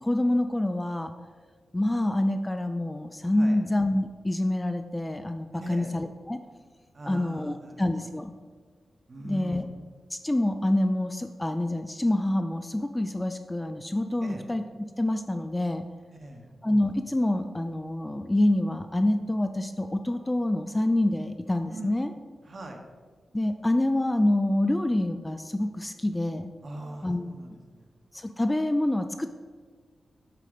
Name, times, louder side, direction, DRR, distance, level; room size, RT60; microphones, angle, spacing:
voice 1, 0.0-1.1 1.7-6.4 7.0-8.3 9.2-9.6 10.1-14.6 15.0-15.9 16.6-22.1 23.3-26.5 27.0-27.3 28.1-29.3, left 1 dB, 15° left, 7 dB, 0.3 m, -26 dB
voice 2, 5.6-5.9 6.9-8.1 9.1-9.7 14.2-14.4 16.1-16.5 21.7-21.9 22.4-22.8 26.6-27.9, right 1 dB, 45° right, 2 dB, 1.1 m, -41 dB
7.5 x 3.7 x 5.1 m, 1.5 s
wide cardioid pair, 110°, 0 cm